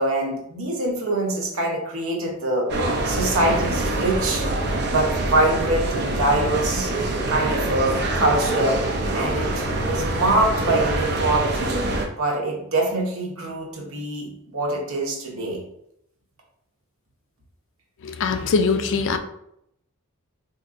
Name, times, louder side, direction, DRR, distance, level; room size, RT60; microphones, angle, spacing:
voice 1, 0.0-2.7 3.0-4.5 4.9-6.9 7.3-8.8 9.1-11.8 12.2-15.6, right 2 dB, 65° right, 0 dB, 0.9 m, -24 dB
sound 1, 2.7-12.1, right 2 dB, 50° right, 0.5 m, -25 dB
voice 2, 18.0-19.2, left 4 dB, 55° left, 8 dB, 0.4 m, -22 dB
4.2 x 2.7 x 2.5 m, 0.77 s
head